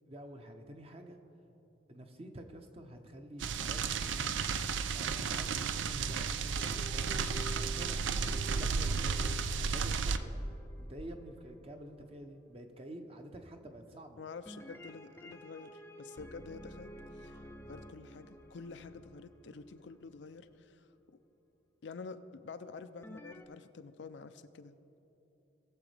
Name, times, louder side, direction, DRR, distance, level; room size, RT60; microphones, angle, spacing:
voice 1, 0.1-1.2 1.9-4.4 4.9-10.5 10.8-14.2, right 1 dB, 30° right, 5 dB, 0.7 m, -49 dB
sound 1, 3.4-10.2, right 5 dB, 85° right, 0.4 m, -33 dB
sound 2, 6.5-11.8 14.4-20.4 23.0-23.4, equal, 15° left, 0.4 m, -51 dB
voice 2, 14.2-17.4 17.7-21.2 21.8-24.7, left 4 dB, 75° left, 11 dB, 0.4 m, -48 dB
19.0 x 7.1 x 3.3 m, 3.0 s
head